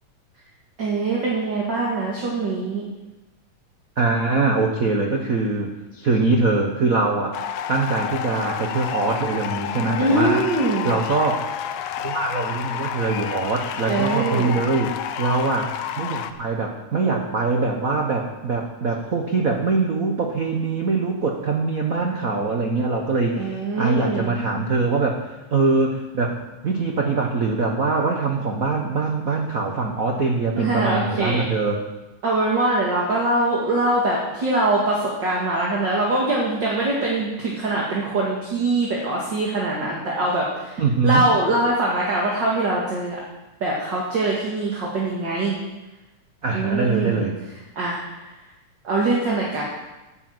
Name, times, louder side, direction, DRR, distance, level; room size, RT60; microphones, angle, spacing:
voice 1, 0.8-2.8 10.0-10.9 13.9-14.5 23.4-24.4 30.6-31.4 32.2-43.2 43.6-45.6 46.5-47.3 47.8-48.3 48.8-49.6, right 2 dB, 40° right, -4 dB, 2.5 m, -23 dB
voice 2, 4.0-7.3 7.7-10.5 10.8-11.5 12.0-14.9 15.2-25.2 25.5-26.4 26.6-31.8 40.8-41.3 46.4-47.4, right 3 dB, 85° right, 2 dB, 0.7 m, -23 dB
sound 1, 7.3-16.3, left 9 dB, 80° left, 2.1 m, -30 dB
9.9 x 9.6 x 7.9 m, 1.0 s
omnidirectional pair, 3.4 m